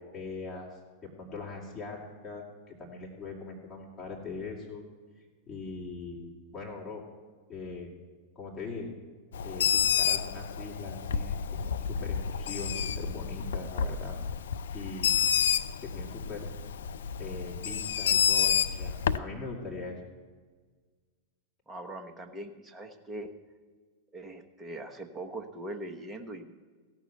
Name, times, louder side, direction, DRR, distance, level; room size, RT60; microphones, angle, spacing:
voice 1, 0.0-4.8 5.5-7.0 7.5-7.9 8.3-8.9 9.4-14.2 14.7-15.1 15.8-16.5 17.2-20.0, left 3 dB, 30° left, -3 dB, 2.9 m, -41 dB
Bird, 9.3-19.2, left 7 dB, 65° left, 0.4 m, -29 dB
voice 2, 21.7-23.3 24.1-26.5, right 1 dB, 15° right, 5 dB, 1.2 m, -41 dB
16.0 x 6.2 x 8.0 m, 1.5 s
figure-of-eight pair, 90°, 0 cm